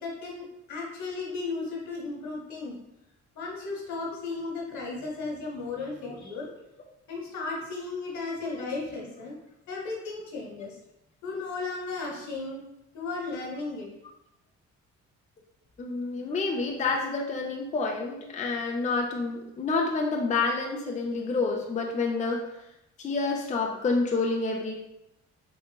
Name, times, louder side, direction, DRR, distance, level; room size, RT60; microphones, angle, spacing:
voice 1, 0.0-2.8 3.3-6.5 7.1-9.4 9.7-10.8 11.2-12.6 12.9-13.9, left 3 dB, 70° left, -2 dB, 1.2 m, -35 dB
voice 2, 15.8-22.4 23.0-24.7, left 3 dB, 25° left, 0 dB, 0.4 m, -28 dB
3.6 x 2.9 x 2.2 m, 0.84 s
cardioid pair, 90°, 30 cm